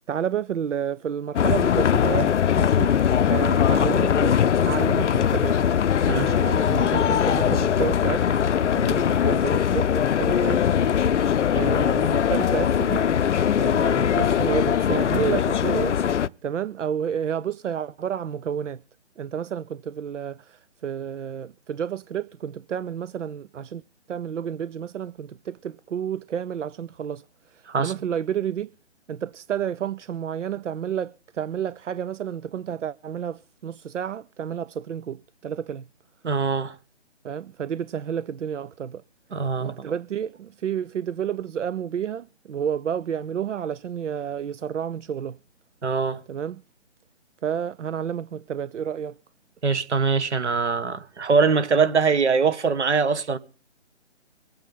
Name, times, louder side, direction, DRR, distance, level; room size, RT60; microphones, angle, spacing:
voice 1, 0.1-2.9 3.3-5.6 6.1-8.3 8.7-10.6 11.5-13.1 13.6-16.0 16.4-18.8 19.2-23.8 24.1-28.7 29.1-35.9 37.2-39.0 39.6-45.4 46.3-46.6 47.4-49.2 51.7-51.8, right 8 dB, 85° right, 0.6 m, -30 dB
sound 1, 1.4-16.3, left 8 dB, 80° left, 0.6 m, -21 dB
voice 2, 6.1-6.4 27.7-27.9 36.2-36.7 39.3-39.7 45.8-46.2 49.6-53.4, right 5 dB, 70° right, 1.4 m, -22 dB
24.0 x 8.7 x 3.8 m
hypercardioid pair, 155°, 35 cm